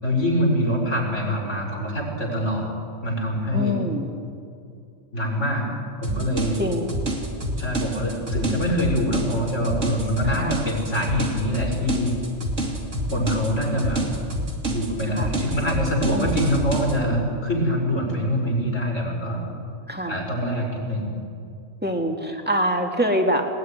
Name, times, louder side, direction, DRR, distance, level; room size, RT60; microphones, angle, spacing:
voice 1, 0.0-2.7 3.0-3.8 5.1-5.7 6.0-6.6 7.6-12.2 13.1-14.0 14.7-19.4 20.1-21.1, equal, 80° left, -1 dB, 5.8 m, -24 dB
voice 2, 3.5-4.1 6.6-6.9 10.2-10.5 15.2-15.3 16.1-16.4 19.9-20.1 21.8-23.5, equal, 10° right, 2 dB, 2.2 m, -24 dB
sound 1, 6.0-16.9, right 1 dB, 90° right, 3.0 m, -28 dB
20.0 x 19.5 x 9.9 m, 2.5 s
omnidirectional pair, 1.2 m